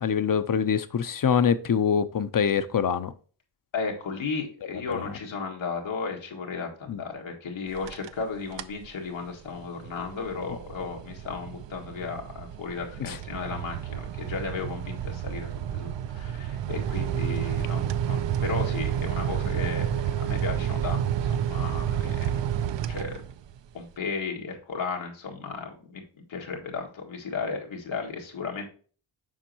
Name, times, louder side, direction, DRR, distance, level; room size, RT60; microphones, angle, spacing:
voice 1, 0.0-3.1 4.9-5.0 6.9-7.0 13.0-13.2, left 7 dB, 45° left, 0.6 m, -24 dB
voice 2, 3.7-23.2 23.7-26.0 26.3-28.7, left 4 dB, 90° left, 1.9 m, -35 dB
sound 1, 7.7-8.2 8.5-8.9 9.3-23.6, right 10 dB, 70° right, 0.6 m, -30 dB
7.3 x 5.2 x 2.8 m
wide cardioid pair, 85°, 46 cm